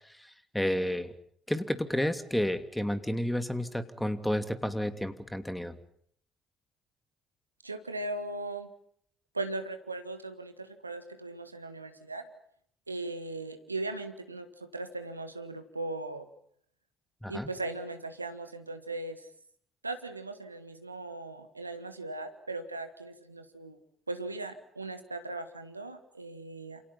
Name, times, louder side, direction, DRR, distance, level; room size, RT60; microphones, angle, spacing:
voice 1, 0.1-1.1 1.5-5.8 17.2-17.5, left 1 dB, 5° left, 10 dB, 2.8 m, -31 dB
voice 2, 7.6-8.7 9.3-12.3 12.9-16.3 17.3-19.3 19.8-23.8 24.1-26.8, right 2 dB, 90° right, 9 dB, 1.6 m, -38 dB
28.5 x 28.5 x 5.8 m, 0.65 s
figure-of-eight pair, 45°, 0 cm